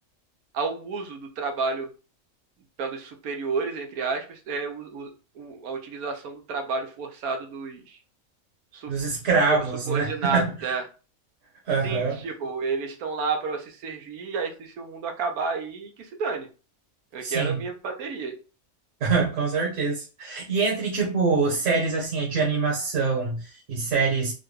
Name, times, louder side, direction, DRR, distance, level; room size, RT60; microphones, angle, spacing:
voice 1, 0.5-1.9 2.8-5.1 5.3-8.0 8.7-9.1 9.5-9.6 9.9-10.8 11.8-16.5 17.1-18.3, right 4 dB, 90° right, 1.2 m, -31 dB
voice 2, 8.9-10.7 11.7-12.2 17.2-17.6 19.0-24.3, right 4 dB, 65° right, 1.4 m, -25 dB
3.9 x 2.2 x 3.1 m
omnidirectional pair, 1.5 m